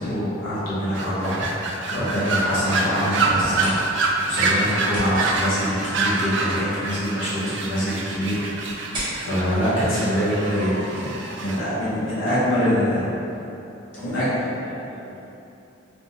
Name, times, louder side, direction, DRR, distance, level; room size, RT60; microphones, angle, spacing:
voice 1, 0.0-3.7 4.2-8.7 9.2-11.1 11.4-13.1 14.0-14.3, equal, 75° left, -11 dB, 1.0 m, -24 dB
sound 1, 0.9-11.6, right 3 dB, 65° right, 0.3 m, -26 dB
sound 2, 3.3-10.8, equal, 25° right, 0.9 m, -39 dB
voice 2, 11.5-12.9 14.0-15.2, left 1 dB, 5° left, -10 dB, 0.8 m, -40 dB
3.4 x 3.2 x 2.7 m, 2.9 s
head